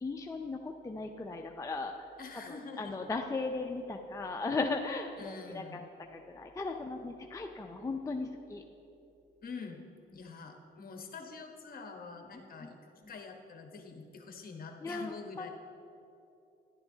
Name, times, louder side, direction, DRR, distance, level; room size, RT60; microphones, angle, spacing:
voice 1, 0.0-2.1 2.5-5.8 6.1-8.6 10.2-10.3 12.6-12.7 14.8-15.5, left 3 dB, 15° left, 3 dB, 0.5 m, -37 dB
voice 2, 2.2-2.9 5.2-5.9 9.4-9.8 10.1-12.8 13.1-15.5, left 4 dB, 50° left, 3 dB, 1.1 m, -46 dB
11.0 x 10.5 x 2.7 m, 2.8 s
cardioid pair, 90°, 20 cm